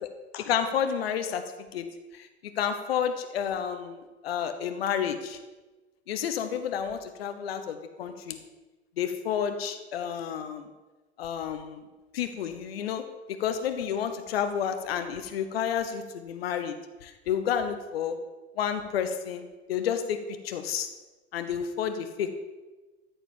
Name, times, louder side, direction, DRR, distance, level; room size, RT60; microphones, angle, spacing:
voice 1, 0.3-1.4 1.7-1.9 2.1-2.3 2.6-5.4 6.1-8.4 9.0-10.6 11.2-11.8 12.1-13.0 13.4-16.7 17.0-18.2 18.6-20.9 21.3-22.3, left 8 dB, 65° left, 8 dB, 0.9 m, -30 dB
13.0 x 5.1 x 7.2 m, 1.2 s
figure-of-eight pair, 80°, 33 cm